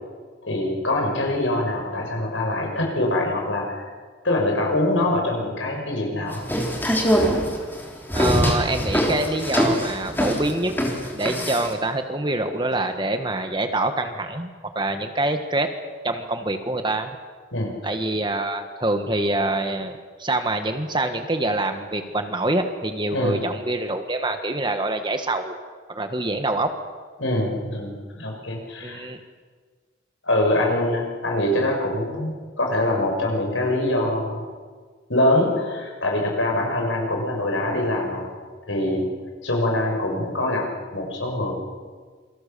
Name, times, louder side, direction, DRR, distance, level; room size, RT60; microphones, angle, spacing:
voice 1, 0.4-3.9 4.2-6.4 17.5-17.7 23.1-23.4 27.2-29.1 30.2-34.5 35.1-38.3 38.7-39.1 39.4-40.6 40.9-41.5, left 1 dB, 75° left, 0 dB, 6.5 m, -24 dB
sound 1, 6.3-11.7, equal, 10° left, 3.6 m, -22 dB
voice 2, 8.1-10.8 11.1-14.5 14.7-15.7 16.0-17.2 17.8-25.6 25.9-26.7 28.8-29.2, right 2 dB, 25° right, 7 dB, 1.6 m, -25 dB
28.0 x 23.0 x 7.0 m, 1.5 s
head